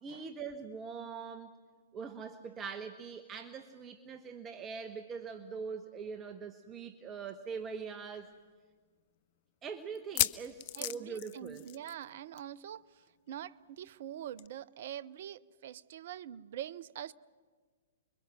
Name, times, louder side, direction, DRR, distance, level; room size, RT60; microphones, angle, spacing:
voice 1, 0.0-1.5 1.9-8.3 9.6-11.7, right 5 dB, 25° right, 1.1 m, -42 dB
sound 1, 7.3-7.4 7.7-7.8 8.4-8.5 9.9-12.1 12.4-12.6 12.8-12.9 14.4-14.5, left 16 dB, 45° left, 0.7 m, -35 dB
voice 2, 10.8-12.8 13.3-17.1, right 11 dB, 55° right, 0.7 m, -44 dB
30.0 x 22.5 x 6.2 m
figure-of-eight pair, 115°, 0 cm